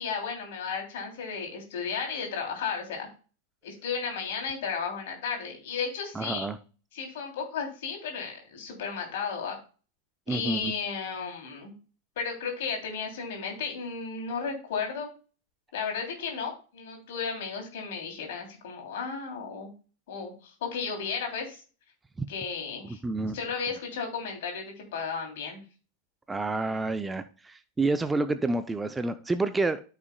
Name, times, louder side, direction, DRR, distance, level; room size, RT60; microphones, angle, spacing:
voice 1, 0.0-3.1 3.6-6.5 6.9-9.6 10.3-11.7 12.2-15.1 15.7-19.7 20.1-21.6 22.3-23.0 23.3-25.6, left 5 dB, 55° left, 2.9 m, -34 dB
voice 2, 6.2-6.6 10.3-10.7 22.2-22.3 22.9-23.4 26.3-29.8, right 3 dB, 10° right, 0.5 m, -29 dB
13.0 x 5.8 x 2.2 m
figure-of-eight pair, 90°, 0 cm